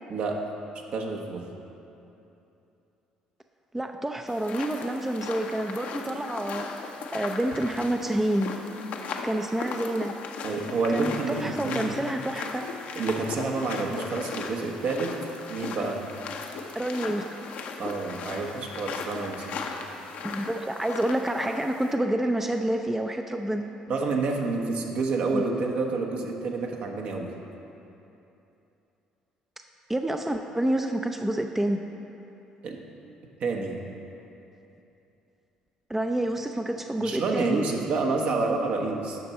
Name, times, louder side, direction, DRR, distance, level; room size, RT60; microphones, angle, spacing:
voice 1, 0.1-0.4 0.9-1.4 10.4-12.0 12.9-15.1 15.5-16.0 17.8-19.6 23.9-27.3 32.6-32.8 33.4-33.8 37.0-39.2, right 3 dB, 55° right, 1 dB, 1.0 m, -28 dB
voice 2, 3.7-6.6 7.1-8.5 9.2-10.1 10.9-12.7 16.8-17.3 20.2-23.6 25.3-25.4 29.9-31.8 35.9-37.7, right 1 dB, 10° right, 5 dB, 0.4 m, -28 dB
sound 1, 4.3-21.9, left 4 dB, 65° left, 0.7 m, -37 dB
9.4 x 6.0 x 4.2 m, 2.9 s
hypercardioid pair, 55°, 3 cm